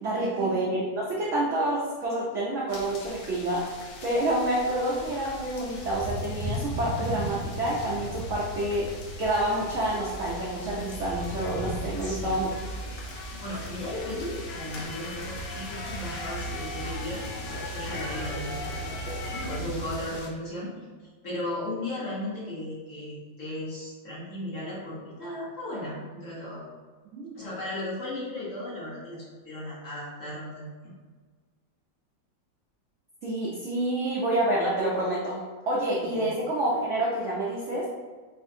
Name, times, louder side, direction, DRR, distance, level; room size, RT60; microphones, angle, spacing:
voice 1, 0.0-8.9 9.2-12.5 27.1-27.5 33.2-37.9, right 1 dB, 80° right, -5 dB, 0.6 m, -28 dB
sound 1, 2.7-20.3, left 2 dB, 70° left, 1.1 m, -44 dB
sound 2, 4.6-20.0, right 1 dB, 15° right, 0.5 m, -38 dB
sound 3, 9.3-19.6, left 3 dB, 85° left, 1.3 m, -41 dB
voice 2, 12.0-12.4 13.1-18.7 19.5-20.7 21.0-26.6 27.3-30.9 36.1-36.3, left 1 dB, 50° left, -7 dB, 1.1 m, -36 dB
4.9 x 2.5 x 2.6 m, 1.4 s
omnidirectional pair, 2.0 m